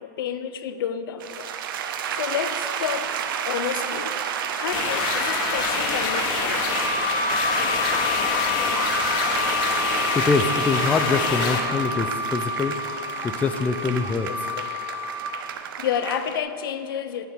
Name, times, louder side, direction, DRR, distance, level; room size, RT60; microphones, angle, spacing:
voice 1, 0.0-1.5 2.2-3.1 3.5-4.2 4.6-6.7 14.2-14.3 15.8-17.3, left 8 dB, 85° left, 10 dB, 0.5 m, -30 dB
sound 1, 1.2-16.4, right 8 dB, 75° right, 0.5 m, -31 dB
sound 2, 4.7-11.6, left 5 dB, 45° left, 1.0 m, -26 dB
Wind instrument woodwind instrument, 6.7-15.3, left 2 dB, 15° right, 1.3 m, -29 dB
voice 2, 10.1-14.5, left 4 dB, 10° left, 9 dB, 0.4 m, -25 dB
9.1 x 4.5 x 5.4 m, 2.4 s
hypercardioid pair, 125°, 12 cm